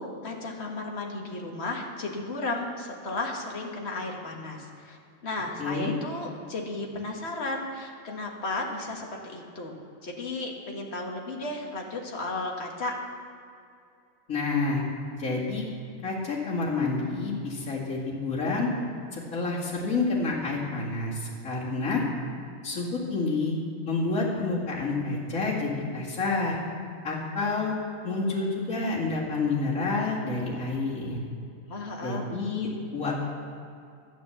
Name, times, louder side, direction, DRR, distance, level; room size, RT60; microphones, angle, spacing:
voice 1, 0.0-9.8 10.0-13.0 31.7-32.2, left 2 dB, 50° left, 1 dB, 1.8 m, -34 dB
voice 2, 5.6-5.9 14.3-14.8 15.2-15.6 16.0-18.7 19.1-22.1 22.6-23.6 23.9-26.6 27.0-27.7 28.0-31.2 32.0-33.3, left 3 dB, 75° left, -8 dB, 2.6 m, -29 dB
12.0 x 9.2 x 7.0 m, 2.5 s
omnidirectional pair, 1.4 m